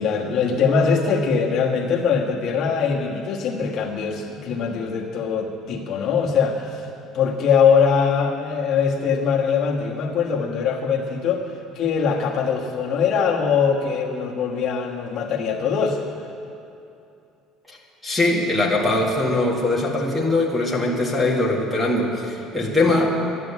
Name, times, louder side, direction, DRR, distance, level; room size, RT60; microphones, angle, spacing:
voice 1, 0.0-6.9 7.1-11.5 11.7-16.0, left 6 dB, 45° left, -2 dB, 1.3 m, -22 dB
voice 2, 18.0-23.2, left 2 dB, ahead, -2 dB, 1.9 m, -21 dB
12.5 x 11.0 x 8.4 m, 2.6 s
cardioid pair, 165°, 0 cm